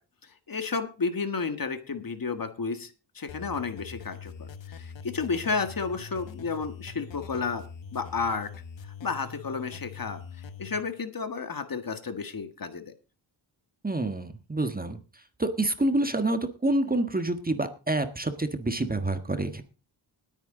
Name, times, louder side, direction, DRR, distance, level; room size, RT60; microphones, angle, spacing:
voice 1, 0.2-8.5 9.0-12.9, left 4 dB, 45° left, 9 dB, 1.8 m, -32 dB
sound 1, 3.3-10.8, left 6 dB, 70° left, 1.4 m, -43 dB
voice 2, 13.8-19.6, right 2 dB, 20° right, 8 dB, 1.5 m, -28 dB
19.0 x 9.2 x 3.9 m, 0.33 s
cardioid pair, 75°, 46 cm